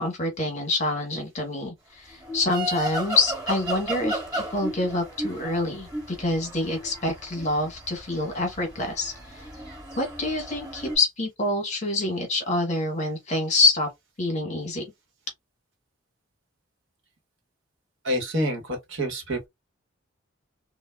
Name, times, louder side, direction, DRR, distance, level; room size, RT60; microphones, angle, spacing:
voice 1, 0.0-9.4 10.0-13.9 14.2-14.8, left 2 dB, 35° left, 1.1 m, -26 dB
sound 1, 2.1-11.0, right 1 dB, 20° right, 1.1 m, -34 dB
voice 2, 18.0-19.5, equal, 60° right, 1.0 m, -27 dB
3.3 x 2.1 x 2.2 m
head